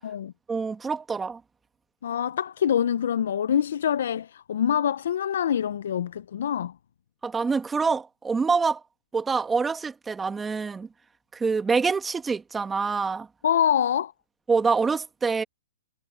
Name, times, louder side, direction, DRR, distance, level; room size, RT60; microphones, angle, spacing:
voice 1, 0.5-1.4 7.2-8.8 9.1-10.9 11.3-13.3 14.5-15.4, right 5 dB, 10° right, 1.8 m, -26 dB
voice 2, 2.0-6.7 13.4-14.1, left 9 dB, 65° left, 0.5 m, -25 dB
hypercardioid pair, 150°, 0 cm